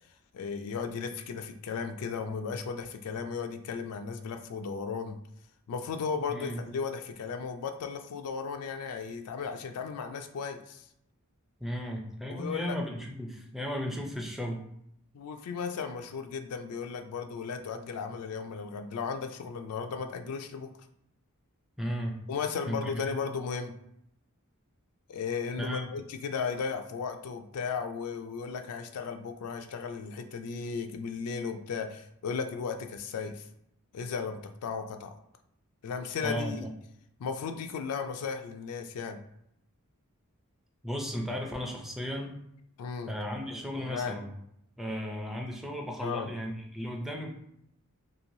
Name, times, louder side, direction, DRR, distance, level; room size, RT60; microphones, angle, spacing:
voice 1, 0.3-5.2 5.7-10.9 12.3-12.8 15.1-20.7 22.3-23.7 25.1-33.5 33.9-35.1 35.8-36.7 37.2-39.2 42.8-43.1 43.8-44.1 46.0-46.3, left 5 dB, 75° left, 6 dB, 0.3 m, -35 dB
voice 2, 6.3-6.6 11.6-14.6 21.8-22.1 22.7-23.1 25.6-25.9 36.2-36.7 40.8-42.4 43.1-44.3 44.8-47.3, equal, ahead, 0 dB, 0.4 m, -35 dB
3.0 x 2.6 x 2.6 m, 0.75 s
head